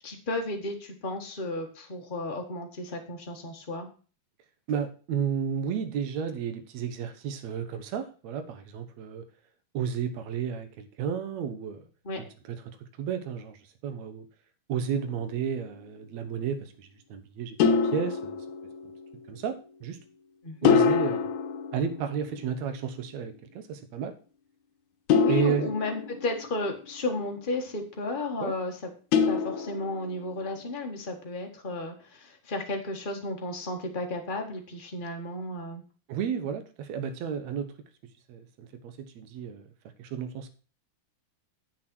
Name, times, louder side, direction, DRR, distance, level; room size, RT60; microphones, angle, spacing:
voice 1, 0.0-3.9 12.0-12.2 20.4-20.7 25.1-28.8 29.3-35.8, left 2 dB, 55° left, 2 dB, 0.5 m, -33 dB
voice 2, 4.7-9.2 9.7-11.8 12.2-12.6 13.0-13.6 13.8-14.3 14.7-18.4 19.3-20.0 20.6-21.3 21.7-24.1 25.3-25.7 28.4-28.5 36.1-37.7 38.3-39.7 40.0-40.5, right 7 dB, 70° right, 9 dB, 2.2 m, -32 dB
sound 1, 14.9-15.4 17.6-19.1 20.6-22.6 25.1-26.8 29.1-30.3, left 6 dB, 75° left, 2.2 m, -26 dB
8.3 x 6.7 x 6.0 m, 0.37 s
omnidirectional pair, 3.5 m